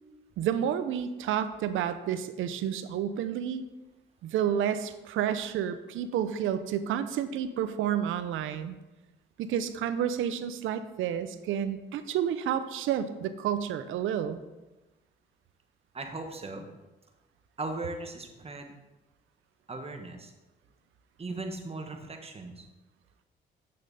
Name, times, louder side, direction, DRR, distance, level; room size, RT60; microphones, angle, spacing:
voice 1, 0.4-3.7 4.2-8.8 9.4-14.4, right 9 dB, 85° right, 11 dB, 0.7 m, -30 dB
voice 2, 15.9-16.7 17.6-18.7 19.7-20.3 21.2-22.7, right 2 dB, 30° right, 4 dB, 1.3 m, -38 dB
8.8 x 6.4 x 4.1 m, 1.1 s
cardioid pair, 90°, 20 cm